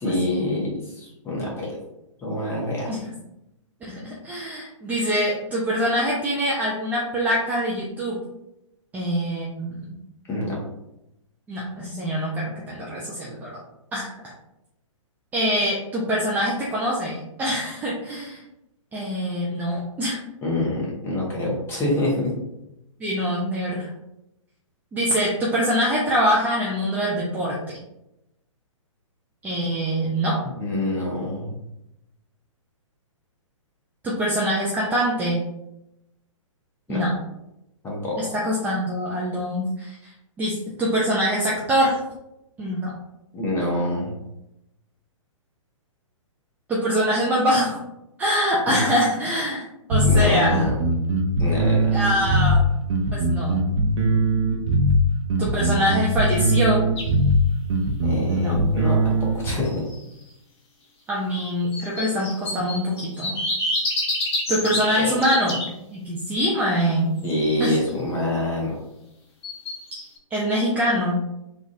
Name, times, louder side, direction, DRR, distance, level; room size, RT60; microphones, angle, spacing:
voice 1, 0.0-1.8 2.2-2.9 10.3-10.6 20.4-22.3 30.6-31.5 36.9-37.0 37.8-38.2 43.3-44.1 48.7-48.9 50.0-50.7 51.4-51.9 58.0-59.1 59.4-59.8 64.9-65.4 67.2-68.8, left 1 dB, 15° left, -4 dB, 1.0 m, -26 dB
voice 2, 3.8-8.2 8.9-9.8 11.5-13.6 13.9-14.1 15.3-18.4 18.9-20.2 23.0-23.9 24.9-27.6 29.4-30.4 34.0-35.4 36.9-37.1 38.2-40.0 40.4-42.0 42.6-42.9 46.7-47.8 48.2-49.6 49.9-50.7 51.9-52.6 53.1-53.6 55.4-56.8 58.3-58.5 61.1-63.4 64.5-65.6 65.9-67.1 67.6-67.8 70.3-71.2, equal, 10° right, -5 dB, 0.4 m, -24 dB
sound 1, 49.9-59.5, right 1 dB, 60° right, 0.6 m, -20 dB
sound 2, 57.0-57.1 59.5-60.0 61.7-65.7 67.2-67.8 69.4-70.2, left 1 dB, 55° left, 1.0 m, -28 dB
3.6 x 2.4 x 2.6 m, 0.88 s
figure-of-eight pair, 120°, 17 cm